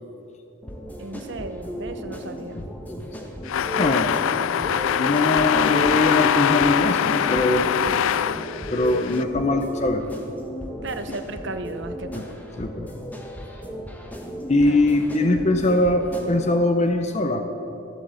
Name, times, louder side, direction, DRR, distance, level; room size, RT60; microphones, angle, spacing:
sound 1, 0.6-16.6, equal, 10° left, 1.1 m, -35 dB
voice 1, 1.0-2.6 10.8-12.4 14.7-15.0, right 2 dB, 60° right, 8 dB, 0.8 m, -35 dB
sound 2, 3.5-9.2, left 9 dB, 80° left, 0.3 m, -23 dB
voice 2, 3.8-4.2 5.0-7.7 8.7-10.0 12.1-12.3 12.6-12.9 14.5-17.4, left 2 dB, 35° left, 6 dB, 0.7 m, -21 dB
14.0 x 8.1 x 7.7 m, 2.8 s
head